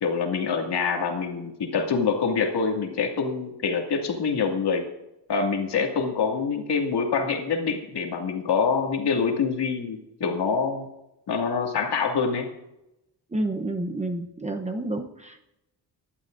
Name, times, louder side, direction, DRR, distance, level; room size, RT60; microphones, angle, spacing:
voice 1, 0.0-4.9 5.3-10.9 11.3-12.5, left 5 dB, 65° left, 2 dB, 2.3 m, -25 dB
voice 2, 13.3-15.5, right 2 dB, 15° right, 4 dB, 0.8 m, -30 dB
24.5 x 11.5 x 2.6 m, 0.90 s
wide cardioid pair, 170°, 43 cm